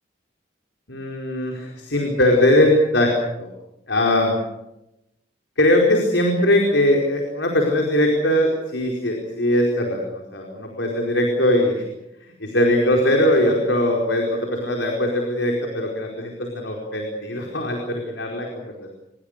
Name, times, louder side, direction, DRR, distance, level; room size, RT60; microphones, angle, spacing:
voice 1, 0.9-3.1 3.4-3.5 3.9-4.4 5.6-11.8 12.2-18.9, left 1 dB, 75° left, 0 dB, 4.7 m, -20 dB
27.0 x 22.5 x 6.7 m, 0.90 s
head